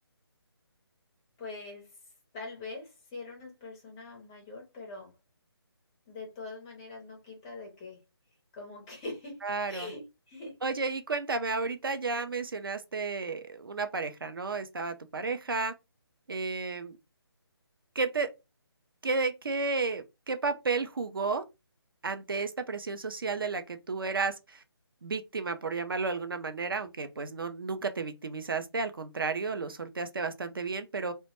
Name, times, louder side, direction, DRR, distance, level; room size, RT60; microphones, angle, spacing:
voice 1, 1.4-1.9 2.3-5.1 6.1-8.0 8.5-9.4 9.7-10.0 10.3-10.5, left 3 dB, 10° left, 0.4 m, -43 dB
voice 2, 9.4-9.9 10.6-15.7 16.3-17.0 18.0-18.3 19.0-21.4 22.0-24.6 25.0-31.1, right 4 dB, 60° right, 0.4 m, -32 dB
2.1 x 2.1 x 2.9 m
figure-of-eight pair, 150°, 13 cm